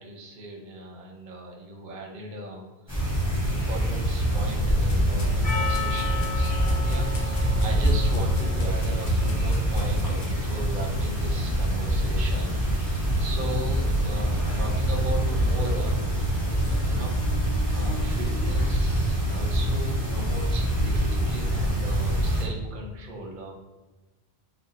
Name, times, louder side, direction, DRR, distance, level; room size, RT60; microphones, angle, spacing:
voice 1, 0.0-3.1 3.5-16.0 16.9-23.5, right 1 dB, 55° right, 0 dB, 0.7 m, -37 dB
sound 1, 2.9-22.4, equal, 25° left, 1.6 m, -25 dB
sound 2, 3.9-10.3, left 2 dB, 85° left, 0.8 m, -43 dB
Percussion, 5.4-9.7, left 4 dB, 40° left, 0.9 m, -36 dB
4.1 x 2.0 x 2.4 m, 1.1 s
omnidirectional pair, 1.1 m